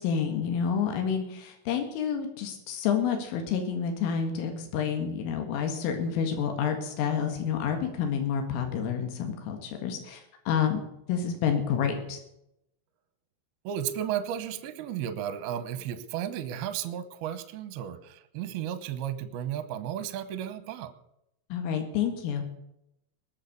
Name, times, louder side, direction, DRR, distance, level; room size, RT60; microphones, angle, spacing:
voice 1, 0.0-10.8 11.1-12.2 21.5-22.4, left 7 dB, 85° left, 4 dB, 4.4 m, -29 dB
voice 2, 13.6-20.9, right 10 dB, 75° right, 11 dB, 2.4 m, -34 dB
20.5 x 7.7 x 6.8 m, 0.80 s
omnidirectional pair, 5.7 m